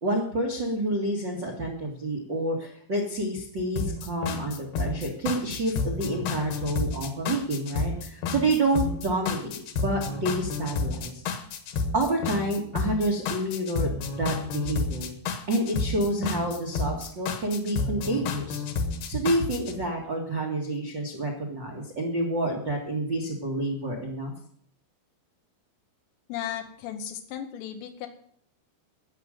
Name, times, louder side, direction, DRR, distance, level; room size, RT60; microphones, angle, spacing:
voice 1, 0.0-11.2 11.9-15.1 15.5-18.6 19.1-24.3, right 1 dB, 70° right, 0 dB, 1.0 m, -28 dB
sound 1, 3.8-19.8, left 4 dB, 65° left, 2.7 m, -31 dB
voice 2, 26.3-28.1, left 10 dB, 85° left, 4 dB, 3.8 m, -35 dB
14.5 x 6.4 x 9.1 m, 0.63 s
omnidirectional pair, 5.8 m